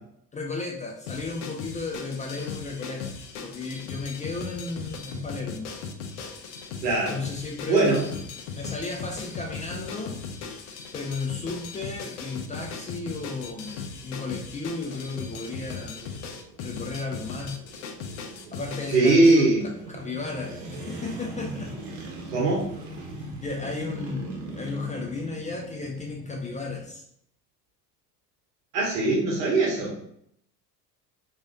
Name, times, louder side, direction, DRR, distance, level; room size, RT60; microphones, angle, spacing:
voice 1, 0.3-3.1 3.4-5.7 7.1-7.9 8.6-10.2 10.9-16.0 16.6-17.6 18.5-19.4 20.0-21.7 22.2-22.3 23.4-27.0, left 3 dB, 15° left, 0 dB, 0.4 m, -34 dB
sound 1, 1.1-19.4, left 5 dB, 65° left, 0.7 m, -38 dB
voice 2, 6.8-7.1 7.7-8.1 18.9-19.6 22.3-22.6 28.7-30.0, right 2 dB, 80° right, -2 dB, 1.2 m, -20 dB
sound 2, 12.1-26.9, right 2 dB, 50° right, 1.0 m, -42 dB
3.1 x 2.7 x 2.7 m, 0.71 s
hypercardioid pair, 70°, 48 cm